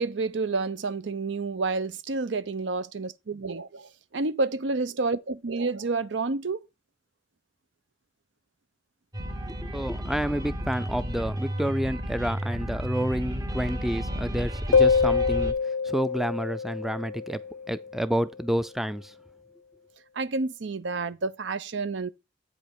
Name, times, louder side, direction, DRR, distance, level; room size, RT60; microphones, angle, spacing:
voice 1, 0.0-6.6 20.2-22.1, right 3 dB, 80° right, 0.7 m, -29 dB
sound 1, 9.1-15.5, equal, 20° right, 0.8 m, -32 dB
voice 2, 9.4-15.5 15.8-17.4 17.7-19.1, equal, ahead, 0.3 m, -29 dB
sound 2, 14.7-18.0, left 5 dB, 85° left, 0.4 m, -25 dB
8.4 x 5.2 x 4.4 m
head